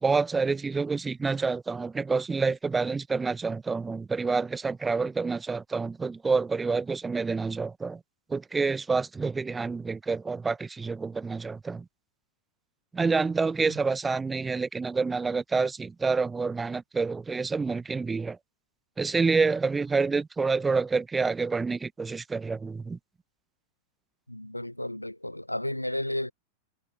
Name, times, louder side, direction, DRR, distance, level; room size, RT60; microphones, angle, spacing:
voice 1, 0.0-8.0 8.3-11.8 12.9-18.4 19.0-23.0, right 4 dB, 15° right, 1.0 m, -28 dB
voice 2, 24.3-26.3, left 1 dB, 85° left, 0.7 m, -32 dB
figure-of-eight pair, 90°, 0 cm